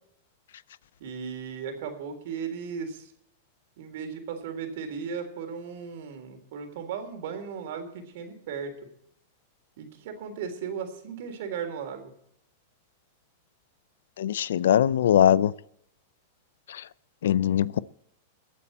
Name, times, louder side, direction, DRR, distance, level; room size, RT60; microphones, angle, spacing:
voice 1, 1.0-3.1 3.8-8.7 9.8-12.1, right 6 dB, 65° right, 6 dB, 3.7 m, -36 dB
voice 2, 14.2-15.5 17.2-17.8, left 10 dB, 80° left, 20 dB, 0.5 m, -21 dB
21.5 x 8.5 x 4.3 m, 0.72 s
hypercardioid pair, 125°, 0 cm